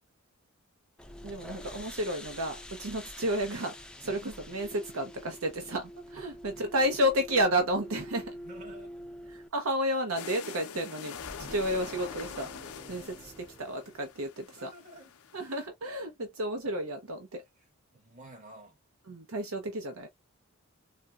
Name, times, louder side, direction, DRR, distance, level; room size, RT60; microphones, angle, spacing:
sound 1, 1.0-9.5, equal, 5° left, 0.4 m, -46 dB
voice 1, 1.2-3.7 4.0-8.4 9.3-11.2 11.5-12.5 12.9-14.7 15.3-17.4 19.1-20.1, equal, 70° right, 0.7 m, -31 dB
voice 2, 8.4-8.9 11.4-11.6 12.8-13.2 14.5-15.1 17.9-18.8, right 1 dB, 35° right, 1.5 m, -51 dB
sound 2, 10.2-15.7, left 7 dB, 85° left, 0.5 m, -45 dB
sound 3, 11.1-14.6, right 1 dB, 15° right, 0.9 m, -50 dB
4.2 x 2.1 x 2.3 m
head